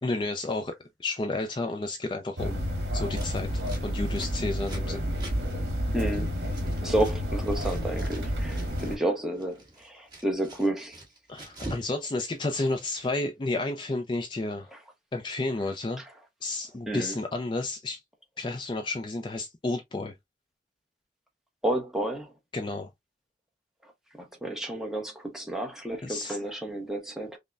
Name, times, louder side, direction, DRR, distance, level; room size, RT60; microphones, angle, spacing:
voice 1, 0.0-0.7 1.0-2.6 2.9-3.5 3.8-5.0 11.3-14.7 15.1-16.0 16.4-18.0 18.4-20.1 22.5-22.9 26.0-26.4, left 2 dB, 25° left, 0.4 m, -31 dB
sound 1, 2.4-9.0, equal, 65° right, 1.3 m, -30 dB
Scissors, 3.1-7.2 7.4-9.0 9.3-11.9 12.1-13.1, right 1 dB, 25° right, 1.3 m, -44 dB
voice 2, 5.9-6.3 6.8-11.0 14.7-14.8 16.0-16.1 16.9-17.2 21.6-22.3 24.2-27.4, right 1 dB, ahead, 0.8 m, -31 dB
5.3 x 2.1 x 2.4 m
head